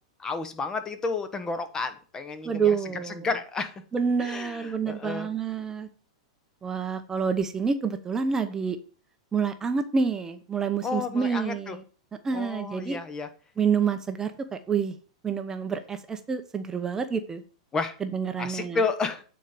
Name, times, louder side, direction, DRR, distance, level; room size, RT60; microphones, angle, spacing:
voice 1, 0.2-2.8 3.0-3.7 4.2-5.3 10.8-11.8 12.3-13.3 17.7-18.0 18.4-19.2, left 4 dB, 20° left, 9 dB, 1.1 m, -31 dB
voice 2, 2.4-3.3 3.9-5.9 6.6-8.8 9.3-11.8 12.2-13.0 13.6-14.9 15.2-17.4 18.0-18.8, right 6 dB, 15° right, 8 dB, 0.8 m, -28 dB
9.1 x 4.4 x 5.1 m, 0.39 s
hypercardioid pair, 125°, 3 cm